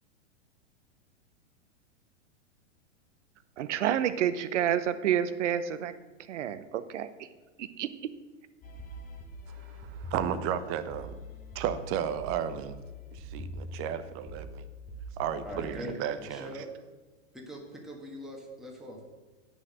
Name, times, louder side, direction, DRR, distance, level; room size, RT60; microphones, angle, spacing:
voice 1, 3.6-5.9 6.3-7.1 7.6-7.9, right 10 dB, 70° right, 0.9 m, -29 dB
sound 1, 8.6-15.6, equal, 25° left, 1.3 m, -43 dB
voice 2, 9.5-11.2 11.5-12.7 13.1-14.6 15.2-16.5, right 9 dB, 35° right, 0.9 m, -33 dB
voice 3, 15.4-16.7 17.3-19.1, equal, ahead, 1.6 m, -42 dB
8.5 x 6.6 x 7.5 m
hypercardioid pair, 120°, 37 cm